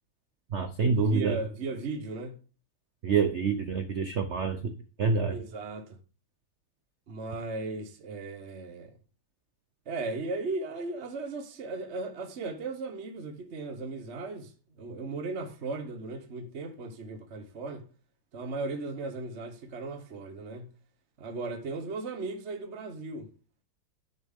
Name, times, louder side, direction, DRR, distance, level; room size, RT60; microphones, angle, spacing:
voice 1, 0.5-1.4 3.0-4.7 5.0-5.4, right 5 dB, 80° right, 0.6 m, -26 dB
voice 2, 1.0-2.4 5.3-6.0 7.1-8.9 9.9-17.9 18.3-20.7 21.2-23.3, right 3 dB, 45° right, 0.9 m, -36 dB
10.0 x 6.9 x 3.6 m
omnidirectional pair, 2.3 m